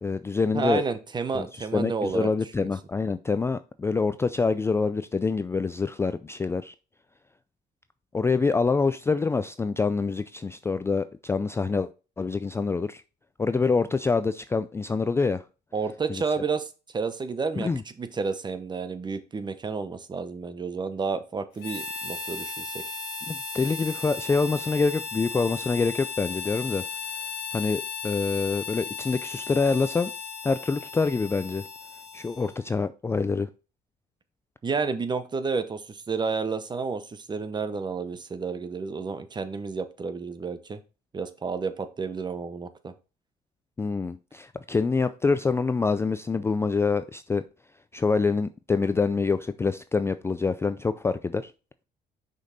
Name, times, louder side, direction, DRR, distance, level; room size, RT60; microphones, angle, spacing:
voice 1, 0.0-0.8 1.3-6.7 8.1-11.9 12.2-13.0 13.4-15.4 16.1-16.2 17.6-17.8 23.3-26.8 27.5-30.1 30.4-31.6 32.1-33.5 43.8-47.4 47.9-51.5, left 4 dB, 15° left, 0.3 m, -26 dB
voice 2, 0.5-2.3 2.6-2.7 15.7-16.7 16.9-17.7 18.0-22.8 34.6-40.8 41.1-42.9, right 4 dB, 25° right, 0.9 m, -30 dB
Harmonica, 21.6-32.7, left 5 dB, 75° left, 1.9 m, -36 dB
6.5 x 5.3 x 4.0 m
cardioid pair, 110°, 17 cm